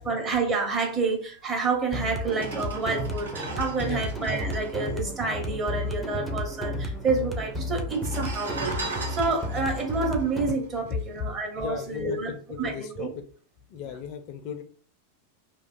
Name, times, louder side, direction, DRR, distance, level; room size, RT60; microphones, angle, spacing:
voice 1, 0.0-12.3 12.6-13.1, right 3 dB, 25° right, 1 dB, 1.0 m, -28 dB
sound 1, 1.6-1.7 2.2-5.9 6.2-6.3 6.5-7.2 7.8-11.3 11.8-12.0, right 3 dB, 65° right, 0.8 m, -39 dB
sound 2, 1.9-10.5, equal, 10° right, 0.6 m, -33 dB
Vehicle horn car horn honking, 8.4-9.0, right 3 dB, 85° right, 1.3 m, -44 dB
voice 2, 11.6-13.1 13.7-14.6, left 7 dB, 40° left, 8 dB, 0.4 m, -36 dB
2.9 x 2.2 x 2.6 m, 0.43 s
figure-of-eight pair, 90°, 0 cm